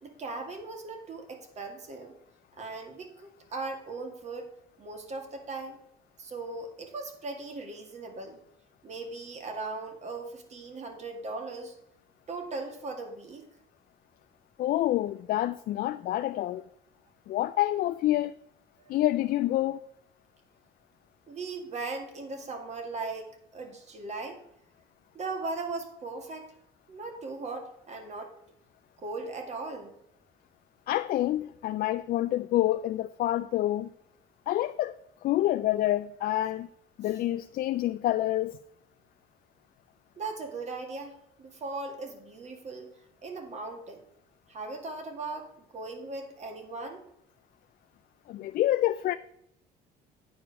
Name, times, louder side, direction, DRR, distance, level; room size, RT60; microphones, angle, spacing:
voice 1, 0.0-2.1 2.6-4.5 4.8-5.8 6.2-8.4 8.8-11.7 12.3-13.5 18.8-19.0 21.3-24.4 25.1-26.5 26.9-28.3 29.0-29.9 40.2-42.9 43.2-44.0 44.5-47.0, right 3 dB, 40° right, 2.0 m, -38 dB
voice 2, 14.6-16.6 17.3-18.3 18.9-19.8 30.9-33.9 34.5-36.7 37.0-38.6 48.3-49.1, left 14 dB, 60° left, 0.4 m, -27 dB
9.2 x 4.9 x 5.9 m
cardioid pair, 110°, 17 cm